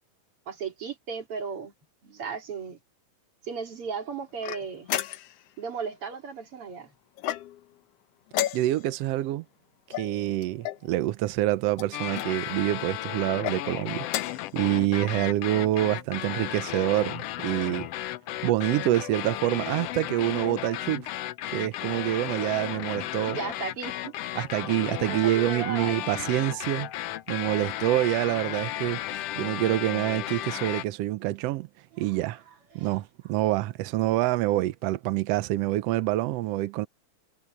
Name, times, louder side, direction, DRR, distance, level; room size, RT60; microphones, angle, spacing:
voice 1, 0.5-1.7 2.0-2.8 3.4-4.9 5.6-6.9 23.3-24.1 24.4-24.6 25.1-26.1 31.9-32.2 32.7-33.0, right 6 dB, 45° right, 3.6 m, -36 dB
sound 1, 4.4-5.5 7.2-7.8 8.3-9.0 9.9-10.9 11.7-12.3 13.3-13.6 14.0-14.5, left 13 dB, 75° left, 1.5 m, -33 dB
voice 2, 8.5-9.4 10.0-17.9 18.4-21.1 21.5-23.4 24.4-26.9 27.3-31.7 32.0-32.4 32.7-36.9, right 16 dB, 85° right, 1.4 m, -26 dB
sound 2, 11.9-30.8, left 14 dB, 90° left, 1.3 m, -34 dB
omnidirectional pair, 3.6 m